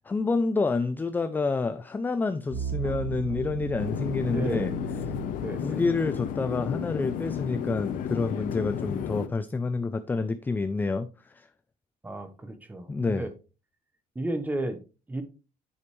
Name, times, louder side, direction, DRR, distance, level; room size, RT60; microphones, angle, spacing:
voice 1, 0.0-4.7 5.6-11.5 12.9-13.3, left 3 dB, 10° left, 0.4 m, -28 dB
sound 1, 2.5-6.6, right 6 dB, 80° right, 1.8 m, -36 dB
sound 2, 3.8-9.3, left 9 dB, 60° left, 0.8 m, -32 dB
voice 2, 4.3-4.7 5.4-5.8 12.0-13.3 14.1-14.8 15.1-15.2, right 1 dB, 10° right, 1.0 m, -33 dB
9.7 x 5.1 x 3.1 m
cardioid pair, 150°, 15 cm